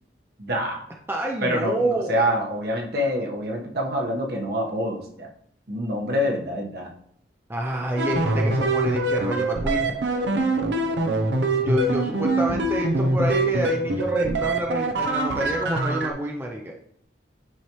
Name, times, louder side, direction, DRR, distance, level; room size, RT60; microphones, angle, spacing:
voice 1, 0.4-0.8 1.4-5.3 5.7-6.9, equal, 60° right, 0 dB, 1.3 m, -26 dB
voice 2, 1.1-2.3 7.5-9.9 11.6-16.7, right 1 dB, 15° right, 0 dB, 0.6 m, -28 dB
sound 1, 8.0-16.1, right 2 dB, 75° right, 0.7 m, -24 dB
9.6 x 4.4 x 3.1 m, 0.67 s
head